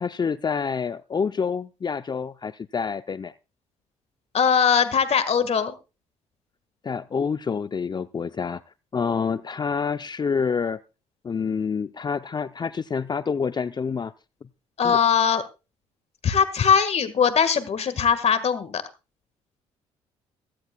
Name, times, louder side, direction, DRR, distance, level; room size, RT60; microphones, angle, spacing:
voice 1, 0.0-3.3 6.8-8.6 8.9-10.8 11.2-14.1 14.8-15.0, left 6 dB, 30° left, 12 dB, 0.6 m, -27 dB
voice 2, 4.3-5.7 14.8-15.4 16.2-18.8, left 7 dB, 50° left, 12 dB, 1.7 m, -21 dB
16.5 x 16.0 x 2.3 m, 0.31 s
hypercardioid pair, 60°, 14 cm